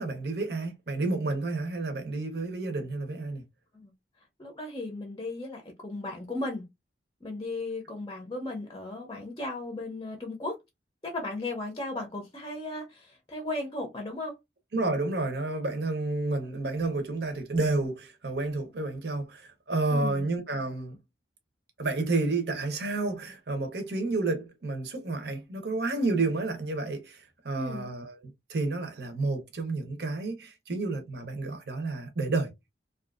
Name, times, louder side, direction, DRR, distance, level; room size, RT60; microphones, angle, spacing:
voice 1, 0.0-3.4 14.7-21.0 21.8-27.2 27.4-32.5, right 3 dB, 65° right, 0.8 m, -30 dB
voice 2, 4.4-6.6 7.2-10.6 11.0-14.4 19.9-20.3 27.5-27.9, left 2 dB, 25° left, 0.6 m, -36 dB
2.6 x 2.4 x 2.4 m
head